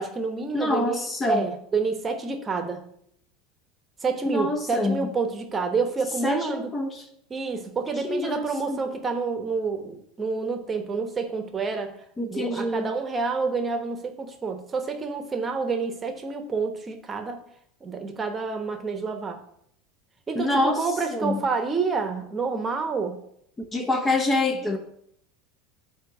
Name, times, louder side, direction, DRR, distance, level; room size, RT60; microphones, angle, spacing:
voice 1, 0.0-2.8 4.0-6.7 7.3-12.0 12.3-17.4 17.8-19.4 20.3-23.2, right 4 dB, 25° right, 6 dB, 1.1 m, -28 dB
voice 2, 0.5-1.4 4.3-5.1 6.2-7.1 8.0-8.8 12.2-12.9 20.3-21.4 23.7-24.8, left 2 dB, 20° left, 5 dB, 0.9 m, -26 dB
8.0 x 2.9 x 6.2 m, 0.70 s
hypercardioid pair, 80°, 0 cm